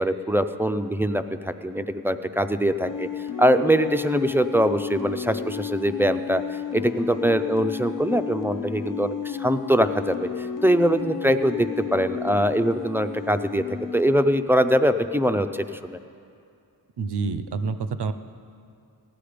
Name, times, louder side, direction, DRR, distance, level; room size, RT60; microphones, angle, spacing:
voice 1, 0.0-3.1 3.4-13.6 13.9-16.0, equal, 5° right, 9 dB, 0.3 m, -23 dB
sound 1, 2.8-14.0, left 8 dB, 55° left, 0.5 m, -33 dB
voice 2, 17.0-18.1, right 4 dB, 75° right, 11 dB, 0.7 m, -27 dB
16.0 x 10.0 x 5.1 m, 2.5 s
wide cardioid pair, 105°, 41 cm